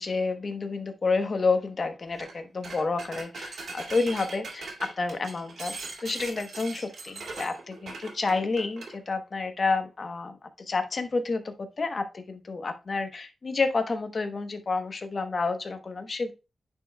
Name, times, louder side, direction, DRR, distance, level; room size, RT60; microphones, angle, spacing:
voice 1, 0.0-5.7 6.0-10.4 10.7-16.3, left 3 dB, 45° left, 7 dB, 0.9 m, -29 dB
sound 1, 2.1-2.3 2.6-8.9, right 3 dB, 80° right, 2.3 m, -40 dB
9.7 x 4.6 x 2.2 m, 0.28 s
wide cardioid pair, 120°, 0 cm